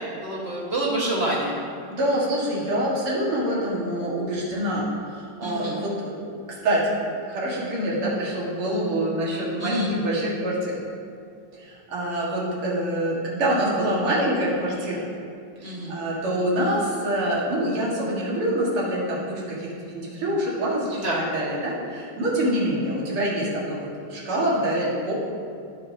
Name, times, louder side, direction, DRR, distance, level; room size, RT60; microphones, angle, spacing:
voice 1, 0.0-1.6 5.4-5.8 9.6-9.9 15.6-16.0 21.0-21.2, right 2 dB, 30° right, -5 dB, 1.7 m, -27 dB
voice 2, 1.9-6.4 6.6-10.8 11.6-15.0 15.6-21.0 21.3-25.1, right 1 dB, 85° right, -6 dB, 2.9 m, -26 dB
16.0 x 6.6 x 2.9 m, 2.3 s
omnidirectional pair, 2.3 m